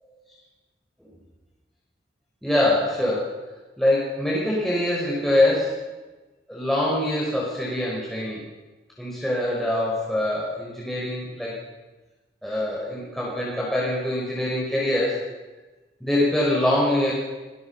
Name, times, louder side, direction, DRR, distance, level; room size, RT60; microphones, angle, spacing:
voice 1, 2.4-3.3 3.8-5.8 6.5-8.4 9.0-11.5 12.4-15.2 16.0-17.1, left 1 dB, ahead, -5 dB, 5.5 m, -24 dB
26.0 x 21.5 x 5.8 m, 1.2 s
head